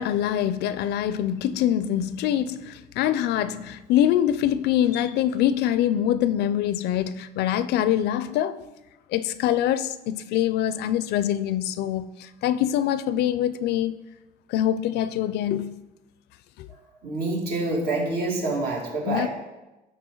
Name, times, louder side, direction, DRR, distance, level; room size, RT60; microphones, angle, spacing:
voice 1, 0.0-8.6 9.1-14.0 14.5-15.8 16.6-16.7 19.1-19.3, left 11 dB, 75° left, 0.4 m, -24 dB
voice 2, 17.0-19.3, right 2 dB, 70° right, 2.5 m, -27 dB
12.0 x 4.4 x 3.8 m
cardioid pair, 110°, 17 cm